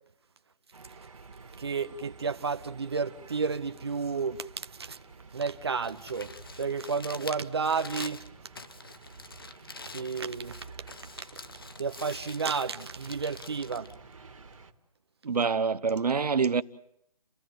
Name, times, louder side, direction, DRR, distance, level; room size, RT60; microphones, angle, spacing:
sound 1, 0.7-14.7, right 4 dB, 60° right, 2.0 m, -51 dB
voice 1, 1.6-5.0 5.3-8.2 9.9-10.7 11.8-13.9, right 5 dB, 40° right, 0.9 m, -32 dB
Crumpling crinkling, 5.8-14.8, left 4 dB, 35° left, 0.8 m, -46 dB
voice 2, 15.2-16.6, right 5 dB, 85° right, 0.9 m, -26 dB
30.0 x 15.5 x 9.2 m
hypercardioid pair, 180°, 20 cm